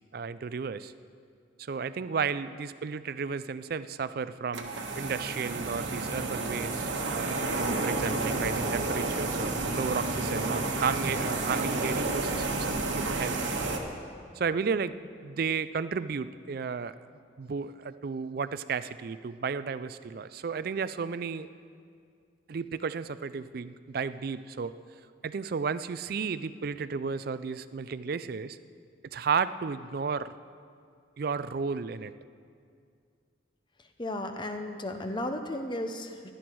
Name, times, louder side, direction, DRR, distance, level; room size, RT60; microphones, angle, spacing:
voice 1, 0.1-0.9 1.6-13.4 14.3-15.0 15.2-16.9 17.4-21.5 22.5-24.8 25.2-28.6 29.1-30.3 31.2-32.1, right 5 dB, 50° right, 14 dB, 0.4 m, -33 dB
sound 1, 4.5-13.8, right 2 dB, 70° right, 1.3 m, -30 dB
voice 2, 34.0-36.3, left 1 dB, 25° left, 6 dB, 0.8 m, -34 dB
16.5 x 11.5 x 4.6 m, 2.2 s
head